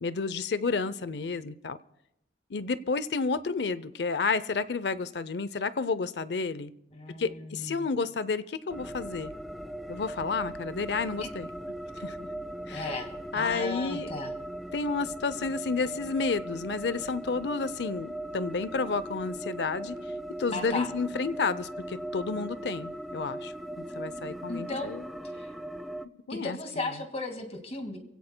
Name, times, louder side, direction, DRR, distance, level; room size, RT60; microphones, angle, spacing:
voice 1, 0.0-1.8 2.5-6.7 7.2-9.3 9.9-11.5 12.0-12.3 12.7-12.8 13.3-14.1 14.7-20.0 20.4-25.0 26.3-26.6, left 4 dB, 70° left, 16 dB, 0.6 m, -31 dB
voice 2, 6.9-7.9 11.2-11.3 12.7-14.3 20.5-20.9 24.5-24.9 25.2-25.5 26.3-28.0, left 2 dB, 35° left, 4 dB, 2.0 m, -36 dB
sound 1, 8.7-26.1, right 1 dB, ahead, 0.4 m, -39 dB
27.5 x 16.5 x 2.2 m, 0.83 s
head